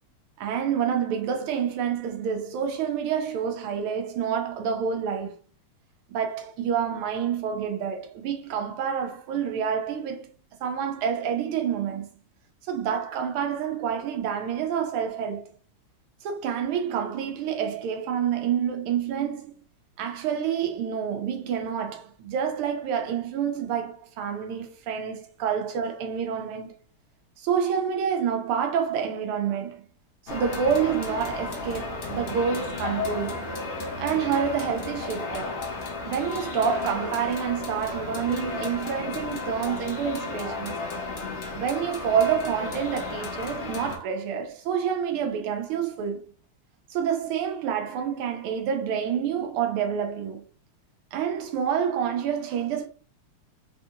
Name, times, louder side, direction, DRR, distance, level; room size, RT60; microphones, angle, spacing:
voice 1, 0.4-5.4 6.1-10.3 10.6-12.1 12.6-15.5 16.2-19.6 20.0-26.7 27.4-29.9 30.2-33.5 34.0-35.6 36.1-40.8 41.5-46.3 46.9-50.4 51.1-52.9, right 7 dB, 90° right, 1.5 m, -28 dB
sound 1, 30.3-44.0, left 3 dB, 60° left, 0.7 m, -33 dB
4.2 x 2.7 x 2.5 m
omnidirectional pair, 2.4 m